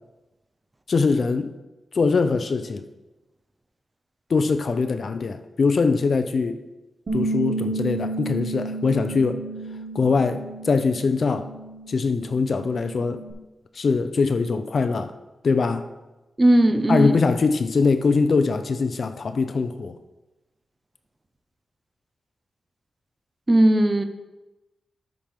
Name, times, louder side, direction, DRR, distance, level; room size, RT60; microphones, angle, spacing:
voice 1, 0.9-1.5 1.9-2.9 4.3-6.6 7.1-9.4 9.9-11.5 11.9-13.2 13.7-15.1 15.4-15.9 16.9-20.0, left 4 dB, 50° left, 0.5 m, -22 dB
Bass guitar, 7.1-13.3, right 3 dB, 45° right, 1.9 m, -32 dB
voice 2, 16.4-17.2 23.5-24.0, right 1 dB, 20° right, 0.7 m, -17 dB
13.0 x 5.8 x 3.6 m
wide cardioid pair, 135°, 0 cm